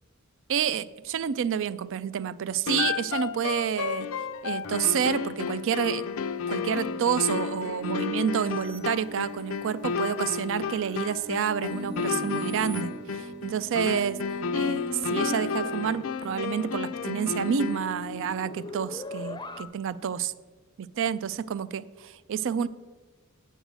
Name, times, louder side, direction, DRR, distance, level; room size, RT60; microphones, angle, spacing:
voice 1, 0.5-4.1 4.4-6.0 6.5-14.2 14.5-20.3 20.8-22.7, right 8 dB, 65° right, 17 dB, 0.4 m, -29 dB
sound 1, 2.7-18.0, left 5 dB, 70° left, 0.5 m, -32 dB
sound 2, 7.8-9.8 10.3-12.8, left 2 dB, 80° right, 1.3 m, -41 dB
sound 3, 11.7-19.6, left 1 dB, 20° left, 0.5 m, -40 dB
8.8 x 6.4 x 7.8 m, 1.3 s
head